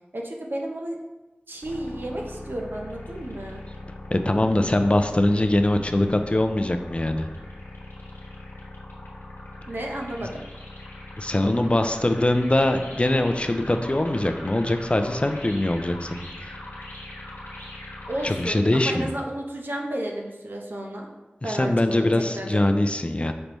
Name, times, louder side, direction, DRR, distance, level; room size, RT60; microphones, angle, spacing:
voice 1, 0.1-1.0 1.5-3.6 9.7-10.4 18.1-21.1 21.4-22.1 22.3-22.6, right 1 dB, 65° right, 0 dB, 0.7 m, -32 dB
sound 1, 1.6-18.5, left 1 dB, 75° left, 1.1 m, -40 dB
voice 2, 4.1-7.3 11.2-16.1 16.4-16.6 18.2-19.1 21.4-23.3, left 1 dB, 30° left, 7 dB, 0.4 m, -22 dB
5.2 x 3.3 x 3.0 m, 1.1 s
wide cardioid pair, 40°, 4 cm